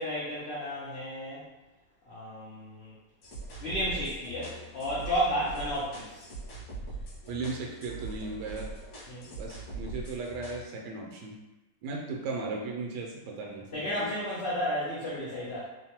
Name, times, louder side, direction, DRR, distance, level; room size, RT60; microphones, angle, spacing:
voice 1, 0.0-1.4 2.1-2.9 3.6-6.3 9.1-9.3 13.7-15.6, equal, 80° left, -8 dB, 0.5 m, -32 dB
Downtempo loop, 3.2-10.6, right 3 dB, 55° left, 0.9 m, -42 dB
voice 2, 7.3-8.7 9.4-11.3 11.8-13.9, right 3 dB, 80° right, -1 dB, 1.2 m, -36 dB
3.0 x 2.1 x 2.8 m, 1.1 s
omnidirectional pair, 1.9 m